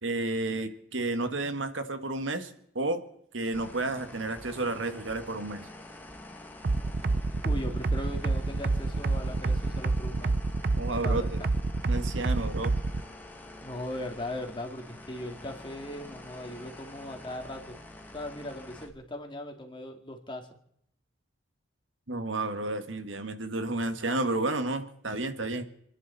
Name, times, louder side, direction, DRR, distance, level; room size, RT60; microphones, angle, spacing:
voice 1, 0.0-3.0 3.3-5.7 10.8-11.4 11.9-12.7 22.1-25.6, right 2 dB, 80° right, 8 dB, 1.6 m, -31 dB
sound 1, 3.5-18.9, left 1 dB, 10° left, 1.9 m, -47 dB
sound 2, 6.6-13.0, right 3 dB, 55° right, 0.6 m, -27 dB
voice 2, 7.4-10.4 11.0-11.5 13.6-17.7 18.1-20.5, left 1 dB, 25° left, 3 dB, 2.2 m, -39 dB
29.5 x 10.5 x 4.1 m, 0.73 s
head